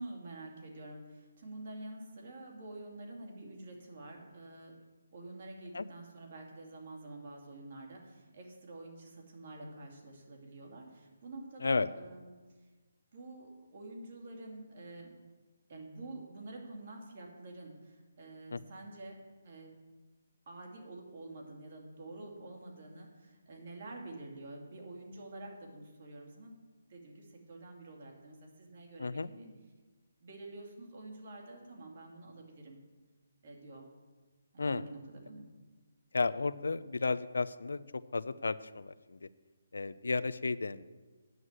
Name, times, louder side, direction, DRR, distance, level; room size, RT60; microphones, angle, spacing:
voice 1, 0.0-4.8 5.1-12.3 13.1-15.2 15.7-19.7 20.5-26.6 26.9-29.5 30.2-32.8 33.4-33.9 34.5-35.4, right 2 dB, 50° right, 0 dB, 2.6 m, -48 dB
voice 2, 29.0-29.3 34.6-34.8 36.1-37.8 38.1-39.2 39.7-40.8, left 3 dB, 85° left, 15 dB, 0.5 m, -33 dB
9.3 x 6.3 x 8.1 m, 1.3 s
hypercardioid pair, 165°, 0 cm